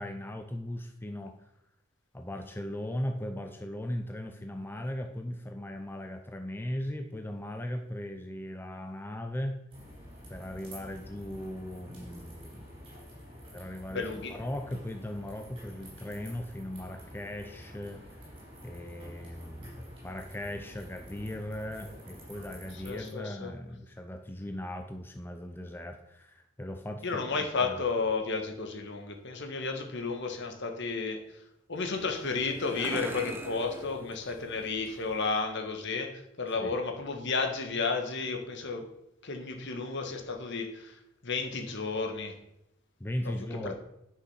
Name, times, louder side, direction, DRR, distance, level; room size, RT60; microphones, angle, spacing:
voice 1, 0.0-1.4 2.1-9.6 10.3-12.7 13.5-18.2 18.6-27.2 27.6-27.8 36.6-36.8 43.0-43.8, left 1 dB, 10° left, 5 dB, 0.6 m, -38 dB
sound 1, 9.7-23.1, equal, 25° right, 4.6 m, -48 dB
voice 2, 13.9-14.4 22.7-23.5 27.0-31.4 31.7-38.9 39.2-42.4 43.5-43.7, left 4 dB, 60° left, 4 dB, 1.6 m, -32 dB
sound 2, 31.7-35.3, right 1 dB, 10° right, 1.0 m, -43 dB
10.0 x 6.3 x 5.6 m, 0.82 s
head